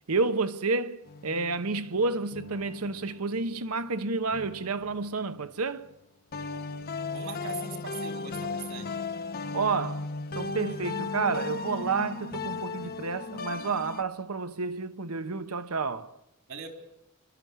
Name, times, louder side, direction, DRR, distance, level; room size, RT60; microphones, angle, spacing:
voice 1, 0.1-5.9 9.5-10.1 10.3-16.1, right 4 dB, 90° right, 1.1 m, -30 dB
sound 1, 1.1-3.6 4.3-5.8 6.3-14.0, left 4 dB, 45° left, 0.8 m, -37 dB
voice 2, 7.1-9.0 16.5-16.7, right 4 dB, 65° right, 3.8 m, -40 dB
26.5 x 12.5 x 9.5 m
head